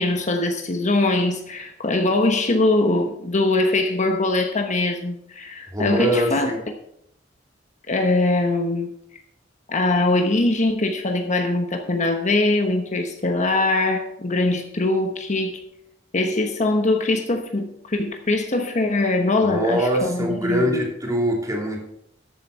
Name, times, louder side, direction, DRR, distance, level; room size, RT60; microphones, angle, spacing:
voice 1, 0.0-6.5 7.9-8.9 9.7-15.6 16.1-20.8, left 2 dB, 40° left, 5 dB, 1.1 m, -22 dB
voice 2, 5.7-6.6 19.4-21.8, equal, 20° right, 0 dB, 2.6 m, -23 dB
13.0 x 8.1 x 4.5 m, 0.73 s
head